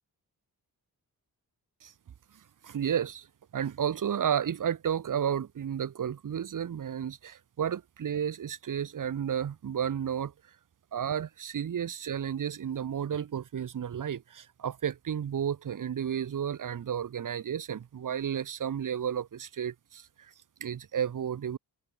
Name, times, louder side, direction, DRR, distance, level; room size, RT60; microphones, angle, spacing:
voice 1, 2.6-3.3 3.5-10.3 10.9-20.3 20.6-21.6, right 8 dB, 55° right, 1.3 m, -32 dB
open air
wide cardioid pair, 115°, 38 cm